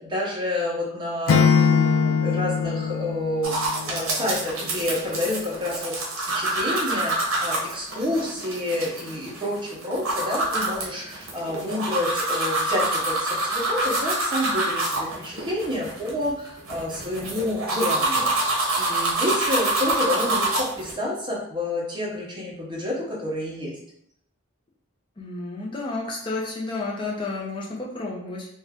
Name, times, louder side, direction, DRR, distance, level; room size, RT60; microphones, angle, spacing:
voice 1, 0.0-5.9 6.3-23.7, left 1 dB, 20° right, -5 dB, 0.8 m, -29 dB
Acoustic guitar / Strum, 1.3-4.3, left 6 dB, 70° left, 0.3 m, -22 dB
sound 1, 3.4-20.9, right 2 dB, 70° right, 0.8 m, -26 dB
voice 2, 25.2-28.5, left 3 dB, 25° left, -3 dB, 0.5 m, -31 dB
2.5 x 2.3 x 3.4 m, 0.73 s
head